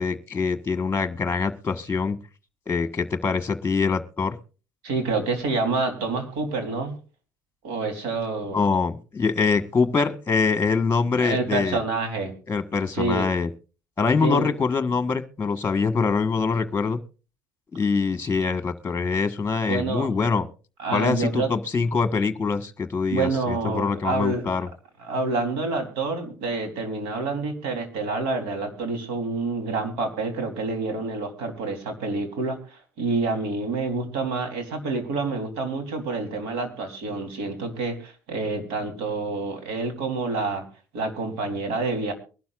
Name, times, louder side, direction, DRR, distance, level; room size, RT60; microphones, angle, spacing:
voice 1, 0.0-2.2 2.7-4.3 8.5-11.8 12.5-13.5 14.0-17.0 17.7-20.5 20.9-24.7, left 4 dB, 20° left, 11 dB, 1.4 m, -24 dB
voice 2, 4.8-6.9 7.6-8.6 11.2-12.3 12.9-13.3 14.2-14.5 19.7-20.2 20.8-21.5 23.1-24.4 25.0-40.6 40.9-42.1, right 3 dB, 75° right, 6 dB, 3.6 m, -28 dB
23.5 x 12.0 x 2.5 m, 0.34 s
hypercardioid pair, 65°, 10 cm